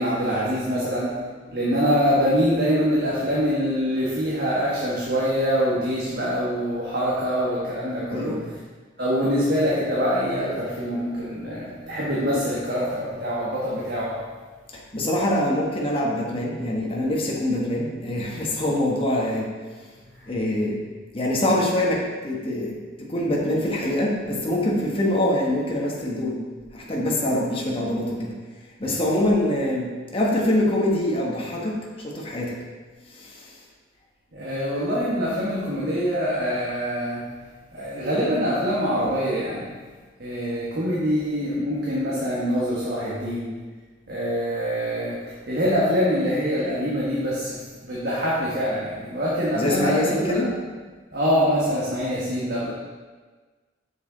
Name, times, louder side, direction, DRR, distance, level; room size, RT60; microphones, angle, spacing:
voice 1, 0.0-8.6 9.0-14.4 20.1-20.4 28.8-29.0 34.3-37.4 37.7-39.8 40.2-43.6 44.1-50.6 51.1-52.7, equal, 55° right, -7 dB, 1.3 m, -25 dB
voice 2, 8.1-8.4 11.6-12.0 14.7-19.5 20.3-20.8 21.1-26.4 26.7-28.3 28.8-32.6 33.1-33.6 49.5-50.5, left 1 dB, 30° left, -3 dB, 1.2 m, -24 dB
7.1 x 6.4 x 3.9 m, 1.4 s
head